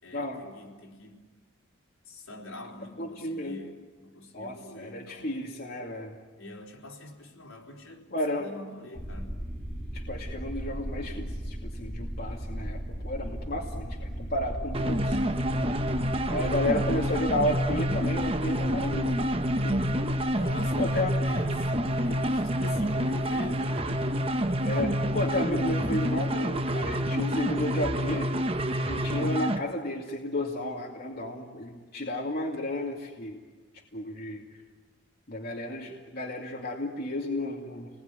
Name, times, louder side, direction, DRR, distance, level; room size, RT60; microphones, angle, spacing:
voice 1, 0.0-1.3 2.1-3.8 4.0-5.3 6.4-9.3 17.1-17.3 20.4-24.7 35.8-35.9, left 1 dB, 75° left, -1 dB, 4.1 m, -45 dB
voice 2, 3.0-3.6 4.3-6.1 8.1-8.5 9.9-15.2 16.3-20.0 20.8-21.2 24.6-28.3 28.8-33.4 33.9-34.4 35.3-37.9, left 1 dB, 45° left, -2 dB, 2.5 m, -32 dB
sound 1, 8.9-28.6, equal, 5° left, 2.3 m, -39 dB
sound 2, 14.7-29.6, equal, 25° right, 0.9 m, -28 dB
29.5 x 20.5 x 9.8 m, 1.4 s
head